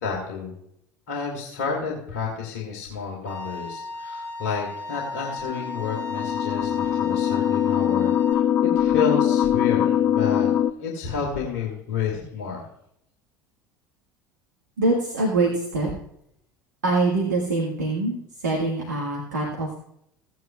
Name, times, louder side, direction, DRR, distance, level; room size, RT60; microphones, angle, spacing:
voice 1, 0.0-0.6 1.1-10.5 10.8-12.7, left 6 dB, 60° left, -1 dB, 2.2 m, -30 dB
Bowed string instrument, 3.3-8.3, left 3 dB, 15° left, 4.6 m, -35 dB
sound 1, 5.4-10.7, left 10 dB, 30° left, 0.5 m, -22 dB
voice 2, 14.8-15.9 16.8-19.7, right 2 dB, 75° right, -2 dB, 1.7 m, -24 dB
16.5 x 9.2 x 2.4 m, 0.75 s
figure-of-eight pair, 70°, 10 cm